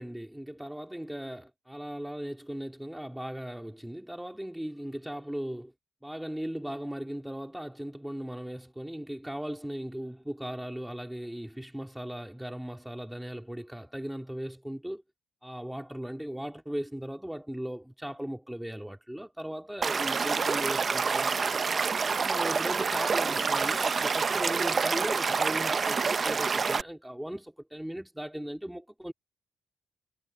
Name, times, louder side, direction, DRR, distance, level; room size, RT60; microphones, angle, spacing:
voice 1, 0.0-5.7 6.0-15.0 15.4-21.6 22.0-29.1, equal, 5° right, 3.2 m, -38 dB
Stream / Liquid, 19.8-26.8, right 5 dB, 40° right, 0.6 m, -27 dB
cardioid pair, 90°, 0 cm